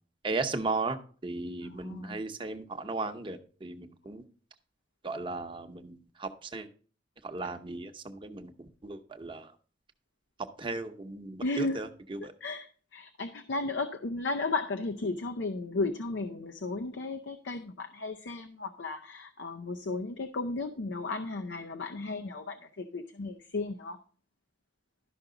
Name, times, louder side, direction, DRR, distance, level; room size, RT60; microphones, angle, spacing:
voice 1, 0.2-4.2 5.0-6.7 7.2-9.5 10.6-12.3, right 3 dB, 25° right, 6 dB, 0.8 m, -36 dB
voice 2, 1.6-2.2 11.4-11.8 12.2-24.0, left 3 dB, 70° left, 6 dB, 0.6 m, -34 dB
12.0 x 5.9 x 3.8 m, 0.42 s
head